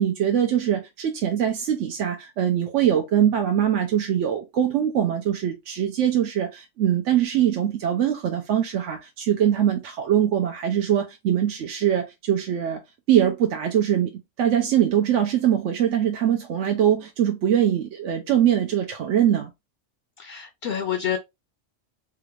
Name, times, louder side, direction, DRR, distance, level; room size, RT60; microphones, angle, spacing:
voice 1, 0.0-12.8 13.1-14.1 14.4-19.5, right 10 dB, 75° right, 1.0 m, -22 dB
voice 2, 20.2-21.2, left 9 dB, 60° left, 0.7 m, -28 dB
3.9 x 2.5 x 3.1 m
omnidirectional pair, 1.3 m